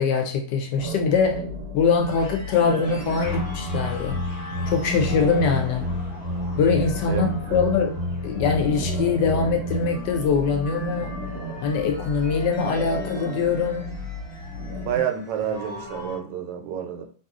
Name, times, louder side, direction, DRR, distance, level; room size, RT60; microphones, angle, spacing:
voice 1, 0.0-1.5 1.7-4.2 4.7-5.8 6.6-8.0 8.2-11.2 11.6-13.9, left 5 dB, 85° left, 2 dB, 1.3 m, -23 dB
sound 1, 0.7-15.0, equal, 65° right, 1.2 m, -34 dB
sound 2, 2.0-16.2, left 1 dB, 45° left, 1.1 m, -41 dB
sound 3, 3.2-9.8, left 1 dB, 5° right, 1.0 m, -30 dB
voice 2, 14.8-17.0, right 9 dB, 85° right, 5 dB, 1.2 m, -29 dB
3.1 x 2.7 x 2.4 m, 0.42 s
omnidirectional pair, 1.8 m